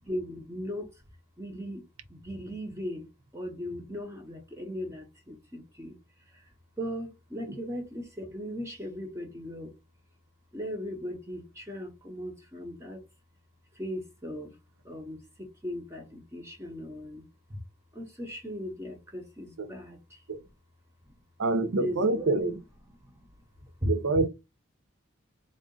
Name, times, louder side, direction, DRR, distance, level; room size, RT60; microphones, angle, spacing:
voice 1, 0.0-0.9 1.4-1.8 2.1-3.1 3.3-5.9 6.8-9.7 10.5-13.0 13.8-14.5 14.8-15.2 15.6-17.2 17.5-17.6 17.9-20.2 21.8-22.3 23.8-23.9, equal, 15° right, 0.8 m, -37 dB
voice 2, 21.4-22.6 23.8-24.3, right 3 dB, 80° right, 0.7 m, -26 dB
3.7 x 2.4 x 3.7 m
head